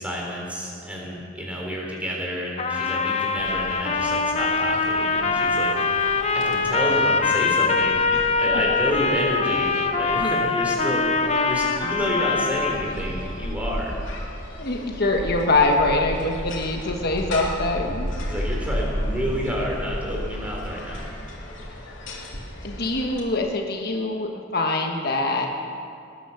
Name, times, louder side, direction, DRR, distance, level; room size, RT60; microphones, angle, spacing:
voice 1, 0.0-5.7 6.3-8.1 8.4-11.1 11.5-14.0 18.3-21.1, equal, 5° right, -2 dB, 3.5 m, -29 dB
Trumpet, 2.6-13.0, left 4 dB, 35° left, 0.9 m, -23 dB
sound 1, 3.4-23.2, equal, 70° left, 2.9 m, -34 dB
voice 2, 14.6-18.1 22.6-25.5, left 2 dB, 50° left, 2 dB, 1.3 m, -24 dB
19.5 x 10.0 x 7.1 m, 2.4 s
head